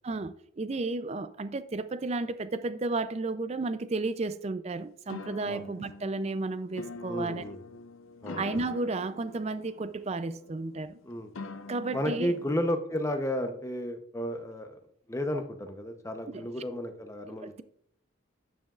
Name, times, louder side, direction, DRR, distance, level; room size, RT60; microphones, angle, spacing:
voice 1, 0.0-7.4 8.3-11.0 11.7-12.4 16.3-16.5 17.4-17.6, right 3 dB, 30° right, 0.4 m, -33 dB
sound 1, 5.1-12.5, left 2 dB, 75° left, 0.6 m, -44 dB
voice 2, 7.1-7.6 8.2-8.4 11.0-11.3 11.9-14.8 15.1-17.5, left 1 dB, 15° left, 0.7 m, -32 dB
9.0 x 8.9 x 2.4 m
head